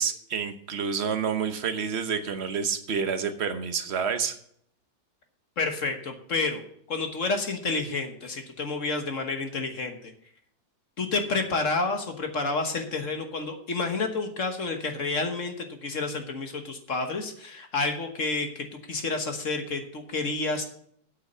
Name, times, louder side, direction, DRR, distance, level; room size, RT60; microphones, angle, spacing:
voice 1, 0.0-4.3, right 6 dB, 45° right, 8 dB, 1.0 m, -28 dB
voice 2, 5.6-6.6 6.9-10.1 11.0-20.6, left 3 dB, 45° left, 5 dB, 1.4 m, -29 dB
8.3 x 8.3 x 6.7 m, 0.67 s
omnidirectional pair, 2.1 m